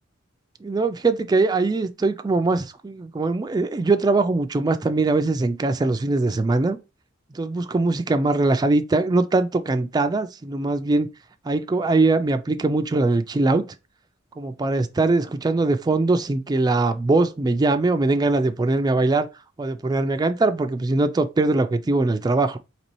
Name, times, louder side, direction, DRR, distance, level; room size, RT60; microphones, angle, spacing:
voice 1, 0.6-6.8 7.3-11.1 11.4-13.6 14.4-19.3 19.6-22.6, right 3 dB, 20° right, 0.3 m, -21 dB
4.1 x 2.9 x 3.0 m
head